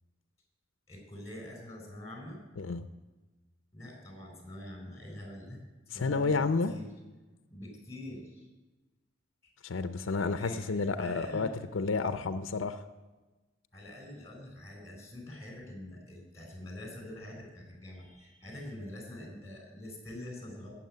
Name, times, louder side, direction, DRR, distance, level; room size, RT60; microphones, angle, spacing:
voice 1, 0.9-2.4 3.7-5.6 5.9-6.9 7.5-8.5 9.4-9.5 10.2-11.5 13.7-20.7, left 1 dB, 15° left, 2 dB, 4.0 m, -45 dB
voice 2, 2.6-2.9 5.9-6.7 9.6-12.8, left 4 dB, 85° left, 11 dB, 0.6 m, -31 dB
15.0 x 7.3 x 9.4 m, 1.2 s
head